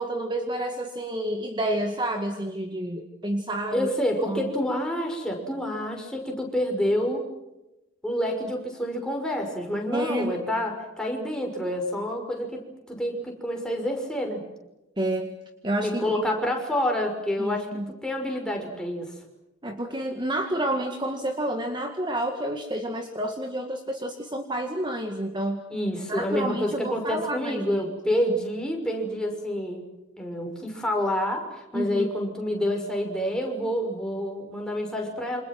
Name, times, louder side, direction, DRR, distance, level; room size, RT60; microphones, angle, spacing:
voice 1, 0.0-3.9 4.3-4.5 9.9-10.3 15.0-15.4 15.6-16.1 17.4-17.9 19.6-25.6 26.1-27.8 31.7-32.1, right 1 dB, 25° right, 5 dB, 1.9 m, -29 dB
voice 2, 3.7-7.2 8.0-12.6 12.9-14.4 15.8-17.7 18.0-19.1 25.7-29.8 30.2-35.4, equal, 5° left, 1 dB, 6.0 m, -28 dB
28.5 x 27.0 x 6.1 m, 0.96 s
head